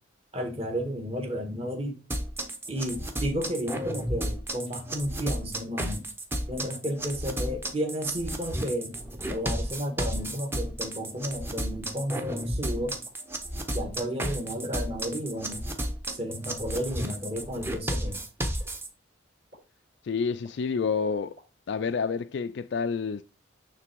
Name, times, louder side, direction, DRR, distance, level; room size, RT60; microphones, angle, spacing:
voice 1, 0.3-2.0 2.7-6.1 6.5-9.0 9.3-13.0 13.7-15.7 16.1-18.2, equal, 30° right, 1.5 m, -32 dB
sound 1, 2.1-18.9, right 1 dB, 10° right, 0.8 m, -33 dB
sound 2, 4.7-4.8 5.7-5.8 6.6-6.7 7.5-7.6 8.4-8.5 9.4-9.5 10.3-10.4 11.2-11.3 12.1-12.2 13.0-13.1 14.0-14.1 14.9-15.0 15.8-15.9 16.7-16.8 17.7-17.8 18.6-18.7 19.5-19.6 20.4-20.5 21.4-21.5, equal, 70° right, 3.8 m, -52 dB
voice 2, 20.0-21.4 21.7-23.2, left 5 dB, 60° left, 0.3 m, -29 dB
9.6 x 3.4 x 4.5 m
head